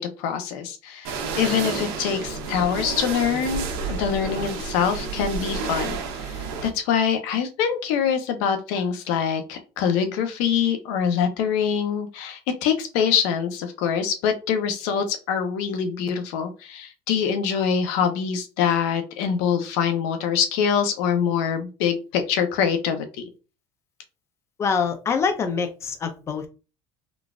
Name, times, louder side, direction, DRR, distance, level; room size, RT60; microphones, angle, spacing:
voice 1, 0.0-23.2, left 7 dB, 70° left, 7 dB, 0.6 m, -24 dB
sound 1, 1.0-6.7, right 5 dB, 80° right, 0.8 m, -30 dB
voice 2, 24.6-26.5, left 5 dB, 20° left, 8 dB, 0.4 m, -25 dB
3.9 x 2.3 x 2.3 m, 0.32 s
cardioid pair, 155°, 13 cm